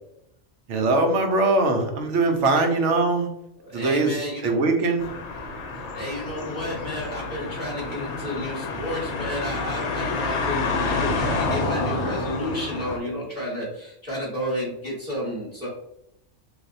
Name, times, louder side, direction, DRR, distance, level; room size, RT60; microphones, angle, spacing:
voice 1, 0.7-3.3 3.7-5.1, right 2 dB, 70° right, 4 dB, 1.0 m, -22 dB
voice 2, 3.6-4.7 5.9-15.7, equal, 10° right, -6 dB, 1.0 m, -31 dB
sound 1, 5.0-13.0, left 3 dB, 65° left, 0.9 m, -28 dB
3.3 x 2.7 x 2.6 m, 0.79 s
omnidirectional pair, 1.4 m